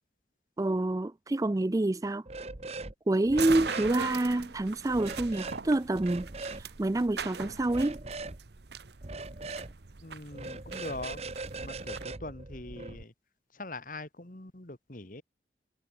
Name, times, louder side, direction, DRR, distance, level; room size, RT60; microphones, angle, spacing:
voice 1, 0.6-2.3 3.1-6.3 6.6-8.0, right 2 dB, 20° right, 0.4 m, -27 dB
sound 1, 2.3-2.9 3.2-3.9 4.9-5.6 6.0-6.6 7.7-8.4 9.0-9.7 10.3-13.0, right 3 dB, 35° right, 1.0 m, -40 dB
sound 2, 3.3-12.0, right 5 dB, 65° right, 1.0 m, -41 dB
voice 2, 10.0-11.2 11.6-13.1 13.5-15.2, left 2 dB, 45° left, 2.0 m, -42 dB
head